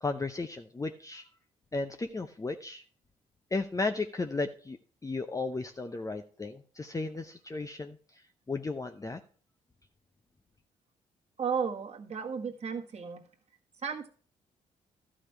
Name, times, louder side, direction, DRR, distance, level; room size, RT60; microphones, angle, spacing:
voice 1, 0.0-1.3 1.7-2.8 3.5-9.2, left 3 dB, 20° left, 6 dB, 0.7 m, -35 dB
voice 2, 11.4-13.2 13.8-14.1, right 6 dB, 40° right, 1 dB, 1.6 m, -34 dB
13.0 x 5.0 x 5.6 m, 0.42 s
hypercardioid pair, 45°, 17 cm